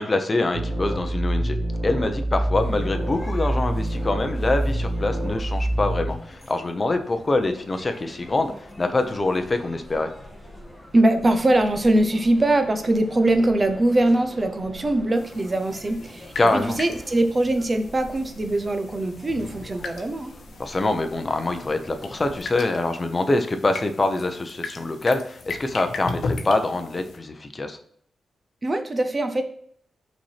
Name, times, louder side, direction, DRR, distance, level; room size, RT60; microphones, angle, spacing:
voice 1, 0.0-1.6 1.8-8.5 8.8-10.1 16.4-16.8 20.6-27.8, left 2 dB, 25° left, 6 dB, 0.8 m, -24 dB
sound 1, 0.5-6.1, right 1 dB, 75° right, 1.3 m, -26 dB
sound 2, 2.6-22.4, left 1 dB, 5° right, 1.9 m, -45 dB
voice 2, 10.9-20.3 28.6-29.4, right 1 dB, 30° right, 8 dB, 0.8 m, -22 dB
sound 3, 15.2-27.2, left 4 dB, 70° left, 0.9 m, -38 dB
5.9 x 4.3 x 5.8 m, 0.63 s
wide cardioid pair, 110°, 0 cm